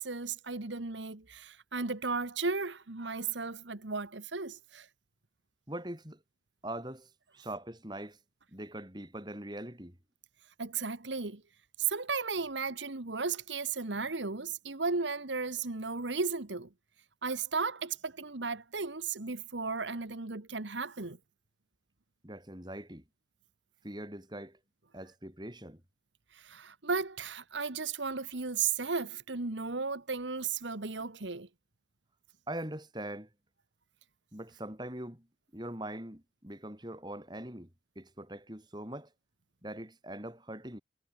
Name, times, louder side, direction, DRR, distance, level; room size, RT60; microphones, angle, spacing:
voice 1, 0.0-4.9 10.6-11.4 11.8-16.7 17.2-21.2 26.3-31.5, right 4 dB, 85° right, 1.6 m, -35 dB
voice 2, 5.7-6.2 6.6-8.2 8.5-10.0 22.2-23.0 23.8-24.6 24.9-25.8 32.5-33.3 34.3-35.3 35.5-37.7 38.0-39.1 39.6-40.8, right 1 dB, 25° right, 4.6 m, -42 dB
head